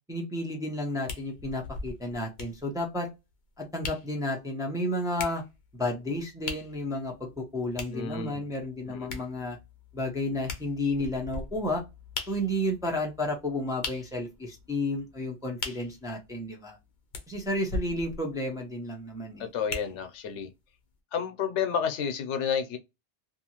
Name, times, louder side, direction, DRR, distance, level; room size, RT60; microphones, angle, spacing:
voice 1, 0.1-3.1 3.6-5.4 5.7-9.6 9.9-11.8 12.3-16.8 17.3-19.5, left 1 dB, 5° right, 0.5 m, -32 dB
sound 1, 1.1-20.4 20.9-21.0, left 4 dB, 50° left, 0.8 m, -41 dB
voice 2, 7.9-8.4 8.9-9.2 19.4-20.5 21.1-22.8, left 7 dB, 85° left, 0.9 m, -31 dB
2.6 x 2.4 x 2.8 m
omnidirectional pair, 1.2 m